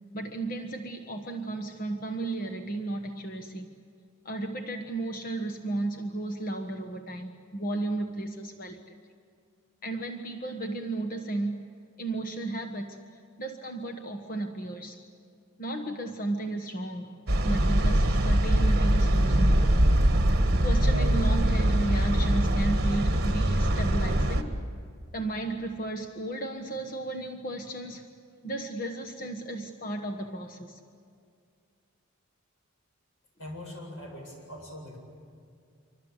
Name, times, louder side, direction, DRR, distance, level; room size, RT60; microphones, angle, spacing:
voice 1, 0.1-3.8 4.2-8.8 9.8-13.0 13.4-15.0 15.6-17.1 17.4-19.7 20.6-24.6 25.1-28.1 28.4-30.8, right 2 dB, 40° left, 4 dB, 1.4 m, -34 dB
sound 1, 17.3-24.4, right 1 dB, 50° right, 1.8 m, -23 dB
voice 2, 33.4-35.0, left 1 dB, 85° left, 1 dB, 8.0 m, -42 dB
27.0 x 25.5 x 8.1 m, 2.3 s
head